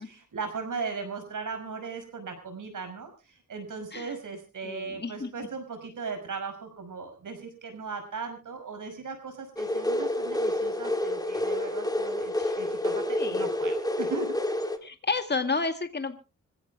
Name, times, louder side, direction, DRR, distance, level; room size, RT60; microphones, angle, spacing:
voice 1, 0.0-14.3, right 4 dB, 80° right, 6 dB, 6.0 m, -38 dB
voice 2, 4.6-5.5 12.4-12.5 13.2-13.5 14.8-16.2, left 4 dB, 35° left, 7 dB, 2.0 m, -31 dB
sound 1, 9.6-14.8, left 1 dB, 10° left, 1.9 m, -29 dB
26.0 x 16.0 x 2.3 m, 0.32 s
wide cardioid pair, 90°, 31 cm